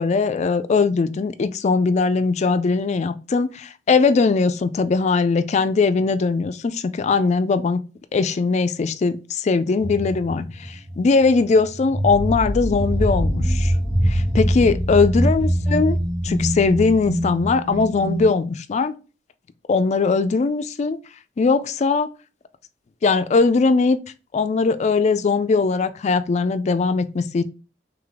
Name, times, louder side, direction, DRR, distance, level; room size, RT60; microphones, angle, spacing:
voice 1, 0.0-7.8 8.1-13.7 14.1-16.0 16.2-18.9 19.7-21.0 21.4-22.1 23.0-24.0 24.3-27.4, left 4 dB, 40° left, 0.3 m, -20 dB
sound 1, 9.8-18.3, equal, 30° right, 1.0 m, -23 dB
3.5 x 3.2 x 3.8 m
head